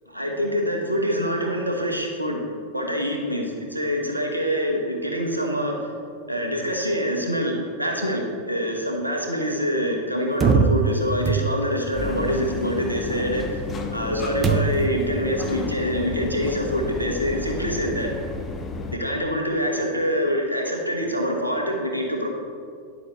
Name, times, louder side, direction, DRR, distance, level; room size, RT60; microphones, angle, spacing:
voice 1, 0.1-2.4 2.7-5.8 6.3-13.6 13.9-18.1 18.9-22.3, equal, 85° right, 1 dB, 1.2 m, -25 dB
sound 1, 10.4-11.9 14.4-15.0, right 5 dB, 20° right, 0.6 m, -22 dB
sound 2, 12.0-19.0, left 4 dB, 20° left, 0.7 m, -32 dB
10.0 x 7.8 x 3.1 m, 2.2 s
figure-of-eight pair, 90°, 0 cm